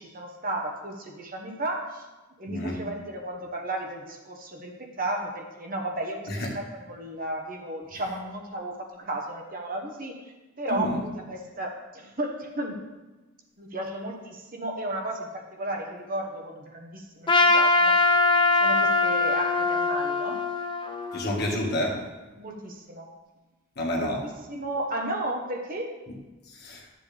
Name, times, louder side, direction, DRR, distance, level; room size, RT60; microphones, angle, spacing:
voice 1, 0.0-2.1 2.4-12.8 13.6-18.1 18.6-20.5 21.7-22.0 22.4-23.1 23.9-25.9, right 1 dB, 40° right, 1 dB, 1.1 m, -34 dB
voice 2, 2.5-2.8 6.3-6.5 10.7-10.9 21.1-22.0 23.8-24.2 26.5-26.9, left 1 dB, 45° left, -1 dB, 1.7 m, -29 dB
Trumpet, 17.3-21.6, left 3 dB, 20° left, 0.6 m, -22 dB
12.5 x 7.5 x 3.4 m, 1.2 s
head